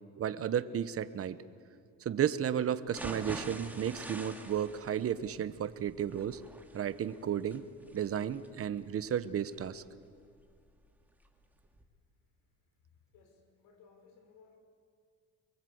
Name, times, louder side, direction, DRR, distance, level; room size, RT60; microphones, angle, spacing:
voice 1, 0.2-1.4 2.0-6.4 6.7-7.6 7.9-9.8, right 9 dB, 40° right, 13 dB, 1.1 m, -33 dB
sound 1, 2.9-10.8 11.2-11.3 11.7-11.8, right 1 dB, 5° right, 2.3 m, -47 dB
voice 2, 13.1-14.6, left 5 dB, 85° left, 5 dB, 5.5 m, -61 dB
25.0 x 23.0 x 8.0 m, 2.2 s
cardioid pair, 105°, 34 cm